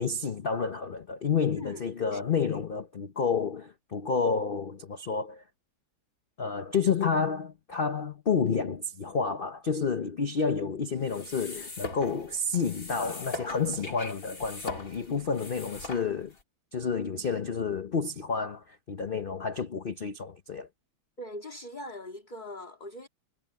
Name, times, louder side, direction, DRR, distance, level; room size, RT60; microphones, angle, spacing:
voice 1, 0.0-5.4 6.4-16.3 16.7-20.7, left 5 dB, 85° left, 0.4 m, -30 dB
voice 2, 1.5-2.4 21.2-23.1, left 1 dB, 25° left, 2.2 m, -42 dB
sound 1, 11.0-16.4, left 2 dB, 40° left, 3.9 m, -41 dB
omnidirectional pair, 2.2 m